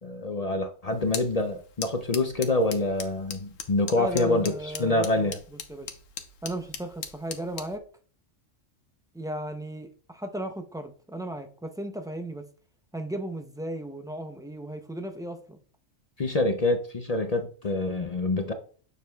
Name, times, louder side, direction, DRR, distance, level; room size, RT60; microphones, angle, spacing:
voice 1, 0.0-5.4 16.2-18.5, left 2 dB, 45° left, 0.5 m, -26 dB
sound 1, 0.9-7.8, left 6 dB, 85° left, 1.2 m, -41 dB
voice 2, 4.0-5.3 5.7-5.9 6.4-7.8 9.1-12.5 12.9-15.6, right 1 dB, 5° right, 0.3 m, -35 dB
9.2 x 6.6 x 2.3 m
omnidirectional pair, 1.3 m